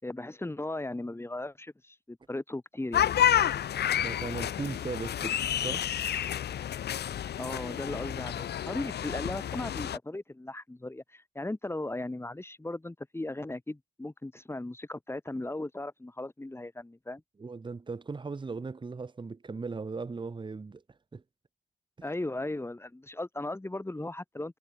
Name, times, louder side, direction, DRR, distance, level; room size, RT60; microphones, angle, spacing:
voice 1, 0.0-3.1 7.4-17.2 22.0-24.6, left 2 dB, 10° left, 5.8 m, -37 dB
sound 1, 2.9-10.0, left 10 dB, 55° left, 0.9 m, -30 dB
voice 2, 4.0-5.9 17.4-20.8 21.1-21.2, right 4 dB, 25° right, 1.4 m, -38 dB
cardioid pair, 90°, 20 cm